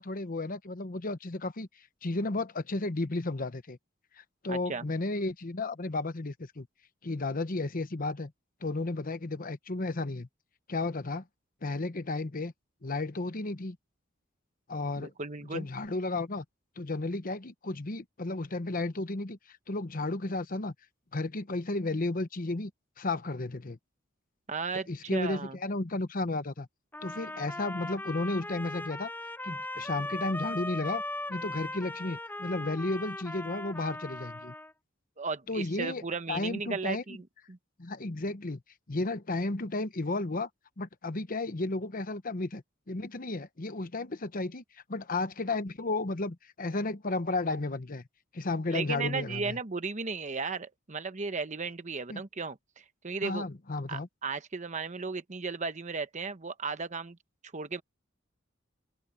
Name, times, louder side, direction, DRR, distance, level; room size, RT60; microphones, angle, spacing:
voice 1, 0.0-1.7 2.0-3.8 4.2-6.7 7.0-8.3 8.6-10.3 10.7-11.2 11.6-12.5 12.8-13.8 14.7-15.1 15.5-16.4 16.8-19.4 19.7-20.7 21.1-22.7 23.0-23.8 24.9-26.7 27.0-29.1 29.4-31.0 31.3-34.5 35.5-36.0 36.3-37.0 37.8-38.6 38.9-40.5 40.8-44.6 44.9-48.0 48.3-49.6 52.1-52.2 53.2-54.1, left 2 dB, 45° left, 1.0 m, -33 dB
voice 2, 4.5-4.9 15.0-15.7 24.5-25.6 35.2-37.6 48.7-53.5 53.9-57.2 57.5-57.8, right 4 dB, 35° right, 1.1 m, -35 dB
sound 1, 26.9-34.7, left 1 dB, 10° left, 7.3 m, -38 dB
open air
head